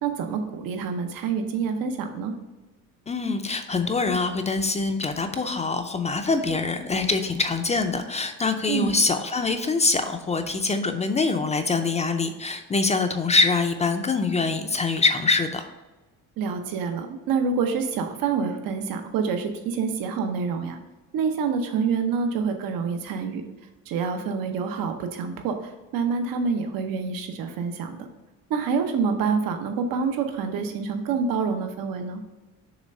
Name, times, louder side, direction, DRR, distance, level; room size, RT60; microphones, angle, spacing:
voice 1, 0.0-2.3 8.7-8.9 16.4-20.8 21.1-23.4 23.9-28.1 28.5-32.2, right 5 dB, 80° right, 6 dB, 0.8 m, -27 dB
voice 2, 3.1-15.7, left 3 dB, 20° left, 7 dB, 0.4 m, -24 dB
7.0 x 3.3 x 5.2 m, 1.1 s
cardioid pair, 145°, 33 cm